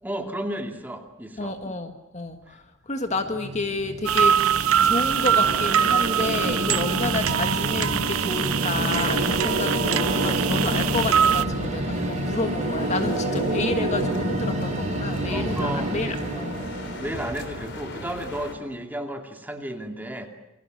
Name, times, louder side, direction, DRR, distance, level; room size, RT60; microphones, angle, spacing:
voice 1, 0.0-1.6 2.5-2.6 13.0-13.4 15.2-16.0 17.0-20.3, right 1 dB, 10° right, 3 dB, 2.5 m, -33 dB
voice 2, 1.4-16.6, left 2 dB, 35° left, 7 dB, 1.6 m, -30 dB
sound 1, 3.1-18.1, right 1 dB, 35° right, 7.3 m, -28 dB
sound 2, 4.0-11.4, right 8 dB, 85° right, 0.8 m, -23 dB
sound 3, 8.7-18.6, left 1 dB, 55° left, 3.6 m, -38 dB
28.5 x 22.5 x 7.9 m, 0.94 s
head